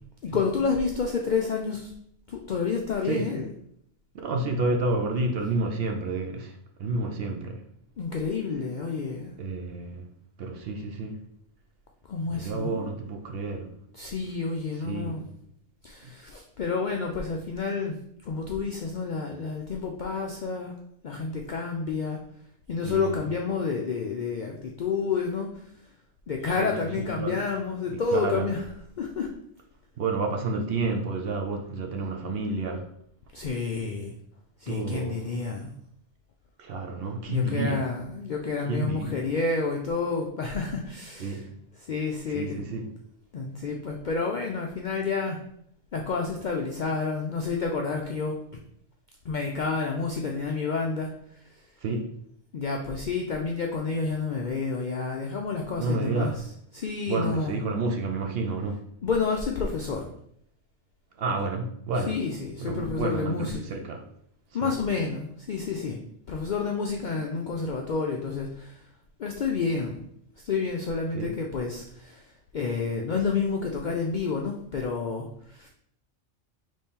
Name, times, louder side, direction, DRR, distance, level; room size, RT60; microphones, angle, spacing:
voice 1, 0.2-1.9 2.3-3.5 8.0-9.3 12.1-12.8 13.9-15.2 15.8-18.0 18.2-20.7 21.0-22.2 22.7-25.5 26.3-28.6 29.0-29.3 33.3-34.1 34.6-35.7 37.3-41.4 41.9-42.6 43.3-45.4 45.9-48.4 49.3-51.1 52.5-56.4 56.7-57.6 59.0-60.1 62.1-63.6 64.5-66.0 66.3-68.8 69.2-70.0 70.4-72.2 72.5-75.7, left 4 dB, 65° left, 0.4 m, -29 dB
voice 2, 4.2-7.6 9.4-10.1 10.4-11.2 12.3-13.7 14.7-15.2 16.0-16.1 22.8-23.2 26.6-26.7 27.0-27.4 27.9-28.5 30.0-32.9 34.7-35.4 36.6-37.9 38.6-39.2 41.2-41.5 42.3-42.9 51.8-52.1 55.8-56.4 57.1-58.9 61.2-62.2 62.6-64.0 64.6-64.8 71.1-71.3, right 3 dB, 60° right, 0.7 m, -30 dB
4.2 x 3.1 x 3.6 m
omnidirectional pair, 1.3 m